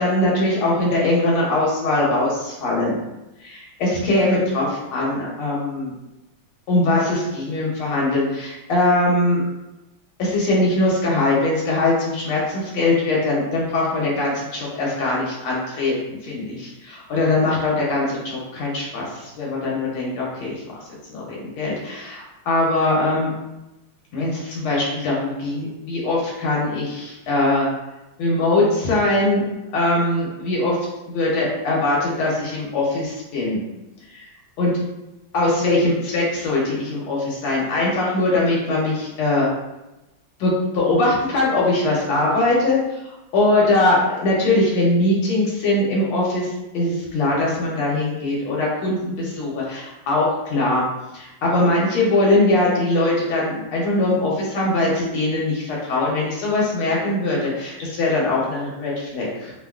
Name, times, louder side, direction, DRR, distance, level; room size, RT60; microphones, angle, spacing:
voice 1, 0.0-3.0 3.4-5.9 6.7-9.4 10.2-20.5 21.1-23.3 24.1-27.7 28.2-29.4 29.7-30.8 31.1-33.6 34.1-34.2 34.6-34.7 35.3-39.5 40.4-42.8 43.0-50.8 51.1-59.5, left 2 dB, 85° left, -4 dB, 1.5 m, -21 dB
3.3 x 2.2 x 2.2 m, 0.98 s
omnidirectional pair, 2.2 m